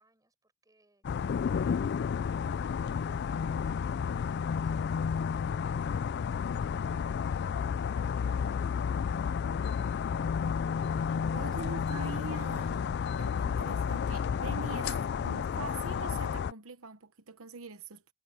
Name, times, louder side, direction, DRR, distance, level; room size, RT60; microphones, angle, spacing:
voice 1, 0.0-6.8 7.2-10.7 11.1-11.8, right 2 dB, 15° right, 6.4 m, -70 dB
sound 1, 1.0-16.5, left 6 dB, 50° left, 0.3 m, -31 dB
voice 2, 11.0-12.8 13.2-18.1, right 4 dB, 75° right, 1.1 m, -44 dB
head